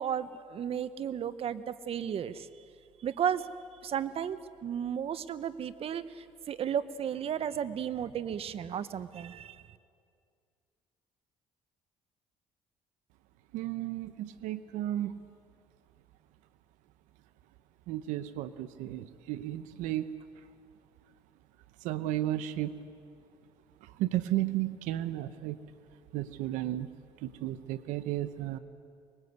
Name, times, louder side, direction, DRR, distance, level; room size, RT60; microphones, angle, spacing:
voice 1, 0.0-2.5 3.0-3.5 3.8-9.6, right 9 dB, 50° right, 14 dB, 1.0 m, -34 dB
voice 2, 13.5-15.1 17.9-20.2 21.8-22.8 23.8-25.6 26.1-26.9 27.2-28.6, right 14 dB, 85° right, 12 dB, 0.9 m, -33 dB
24.5 x 21.0 x 8.2 m, 2.3 s
cardioid pair, 90°, 12 cm